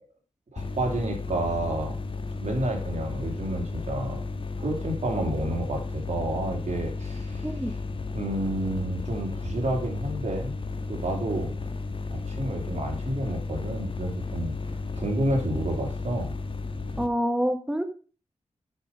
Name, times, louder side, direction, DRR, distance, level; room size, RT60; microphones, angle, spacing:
voice 1, 0.5-2.0 2.4-4.3 4.6-7.5 8.1-10.6 10.9-11.5 12.1-14.5 14.9-16.3, right 1 dB, 65° right, 1 dB, 2.9 m, -30 dB
sound 1, 0.6-17.1, left 3 dB, 45° left, 1.2 m, -33 dB
voice 2, 17.0-17.8, equal, 5° right, 7 dB, 1.1 m, -26 dB
8.3 x 5.9 x 5.3 m, 0.36 s
wide cardioid pair, 80°, 13 cm